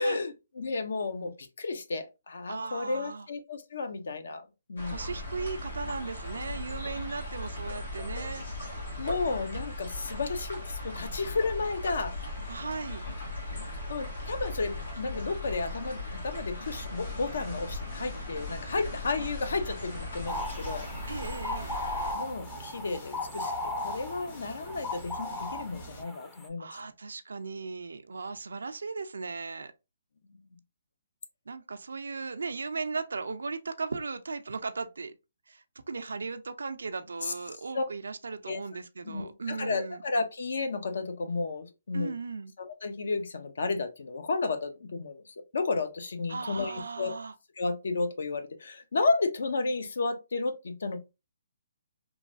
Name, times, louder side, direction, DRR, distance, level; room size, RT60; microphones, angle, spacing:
voice 1, 0.0-1.3 1.6-5.0 9.0-12.2 13.9-20.9 22.1-23.5 23.8-26.7 37.2-37.3 37.7-37.8 38.5-38.6 39.0-42.1 42.6-47.1 47.6-51.0, left 3 dB, 70° left, 0.6 m, -32 dB
voice 2, 2.5-3.3 4.9-8.4 12.5-13.0 21.1-21.8 26.6-29.7 31.5-35.1 35.5-40.0 41.9-42.5 46.3-47.3, right 4 dB, 85° right, 0.4 m, -37 dB
sound 1, 4.8-22.1, left 1 dB, 85° left, 1.4 m, -38 dB
sound 2, 16.6-26.0, right 1 dB, 40° left, 1.0 m, -47 dB
sound 3, 20.3-26.5, left 2 dB, 10° left, 0.4 m, -37 dB
3.0 x 2.3 x 2.5 m
hypercardioid pair, 155°, 0 cm